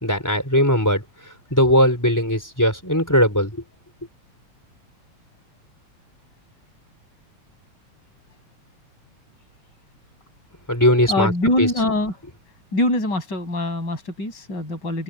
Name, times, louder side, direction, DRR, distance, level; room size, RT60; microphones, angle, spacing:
voice 1, 0.0-1.0 1.5-3.5 10.7-11.3 11.6-11.7, equal, 5° left, 3.8 m, -18 dB
voice 2, 11.1-12.2 12.7-15.0, left 1 dB, 35° left, 8.2 m, -23 dB
omnidirectional pair, 3.3 m